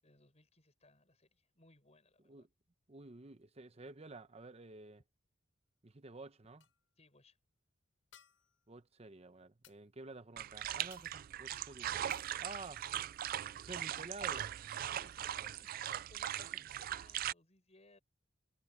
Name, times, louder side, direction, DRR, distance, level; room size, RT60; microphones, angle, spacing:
voice 1, 0.0-2.5 6.9-7.4 14.9-18.0, left 2 dB, 35° left, 6.8 m, -65 dB
voice 2, 2.9-5.0 5.8-6.6 8.7-11.9 12.4-12.8 13.6-14.5, right 3 dB, 30° right, 0.8 m, -51 dB
sound 1, 6.6-6.9 8.1-8.7 9.6-9.8 10.9-11.3 12.1-12.4 13.8-13.9 14.2-14.3, left 10 dB, 75° left, 6.3 m, -63 dB
sound 2, 10.4-17.3, right 11 dB, 45° right, 0.3 m, -40 dB
head